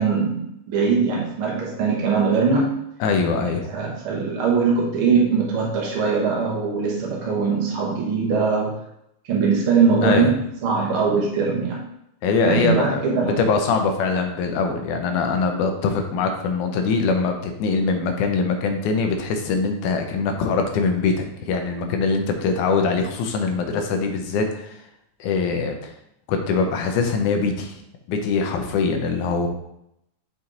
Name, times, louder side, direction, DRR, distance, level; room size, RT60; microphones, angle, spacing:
voice 1, 0.0-2.7 3.4-8.7 9.3-10.3 10.6-11.8 12.4-13.4, right 5 dB, 60° right, -2 dB, 1.5 m, -21 dB
voice 2, 3.0-3.7 10.0-10.3 12.2-24.8 25.2-25.9 26.3-27.8 28.1-29.5, left 4 dB, 85° left, 4 dB, 2.3 m, -23 dB
6.3 x 4.1 x 3.8 m, 0.79 s
omnidirectional pair, 3.4 m